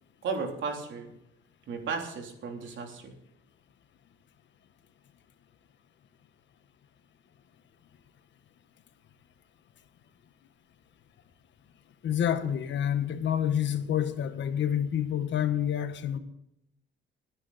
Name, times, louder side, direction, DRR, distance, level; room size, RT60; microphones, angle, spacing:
voice 1, 0.2-1.1 1.7-3.1, right 5 dB, 70° right, 3.4 m, -34 dB
voice 2, 12.0-16.2, left 9 dB, 65° left, 1.4 m, -28 dB
20.5 x 10.0 x 4.2 m
cardioid pair, 90°, 20 cm